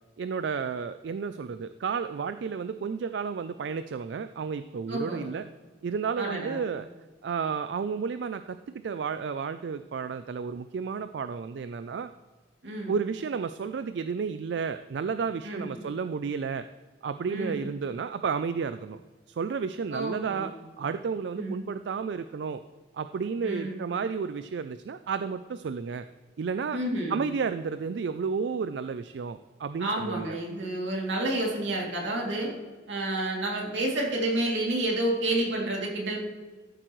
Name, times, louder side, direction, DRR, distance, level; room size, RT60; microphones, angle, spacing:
voice 1, 0.2-5.4 5.8-6.9 7.2-12.1 12.9-16.7 17.0-19.0 19.3-20.5 20.8-22.6 22.9-26.1 26.4-26.8 27.1-30.4, right 5 dB, 70° right, 11 dB, 0.4 m, -32 dB
voice 2, 4.9-5.3 6.2-6.6 12.6-12.9 15.4-15.7 17.3-17.7 19.9-20.5 21.4-21.6 23.4-23.8 26.7-27.2 29.8-32.5 32.9-36.2, right 1 dB, 90° right, -2 dB, 2.7 m, -30 dB
13.5 x 7.7 x 3.1 m, 1.4 s
head